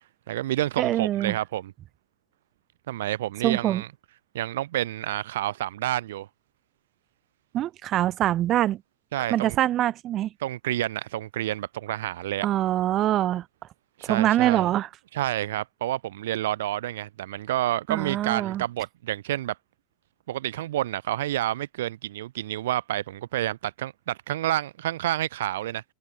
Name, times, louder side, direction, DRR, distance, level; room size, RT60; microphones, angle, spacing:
voice 1, 0.3-1.7 2.9-3.9 4.3-6.3 9.1-9.6 10.4-12.5 14.0-14.7 15.1-19.6 20.3-25.8, right 14 dB, 80° right, 4.6 m, -29 dB
voice 2, 0.8-1.3 3.4-3.8 7.5-8.8 9.3-10.3 12.4-13.4 14.1-14.9 17.9-18.6, right 13 dB, 45° right, 0.8 m, -24 dB
hypercardioid pair, 105°, 0 cm